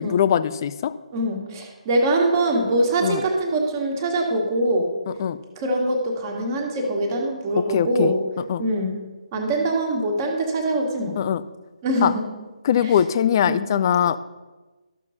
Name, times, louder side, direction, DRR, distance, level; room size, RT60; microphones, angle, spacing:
voice 1, 0.0-0.9 3.0-3.2 5.2-5.4 7.6-8.1 8.5-8.6 11.2-11.4 12.0-12.1 12.6-14.2, left 9 dB, 30° left, 14 dB, 0.3 m, -21 dB
voice 2, 1.1-4.9 5.6-8.2 8.6-8.9 9.3-11.2 11.8-12.3 12.8-12.9 13.5-13.6, right 1 dB, 30° right, 2 dB, 1.5 m, -23 dB
13.0 x 6.5 x 2.8 m, 1.2 s
figure-of-eight pair, 140°, 4 cm